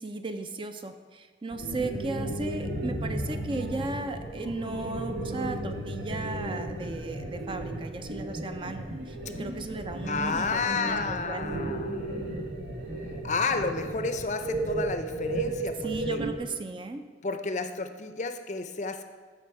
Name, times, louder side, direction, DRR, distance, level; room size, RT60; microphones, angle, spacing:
voice 1, 0.0-11.0 11.3-11.5 15.8-17.0, right 3 dB, 30° right, 8 dB, 0.5 m, -36 dB
sound 1, 1.5-16.4, right 1 dB, 80° right, 1.6 m, -34 dB
voice 2, 10.1-12.1 13.2-15.8 16.1-16.2 17.2-19.0, left 4 dB, 40° left, 8 dB, 0.5 m, -31 dB
14.0 x 5.1 x 4.7 m, 1.4 s
head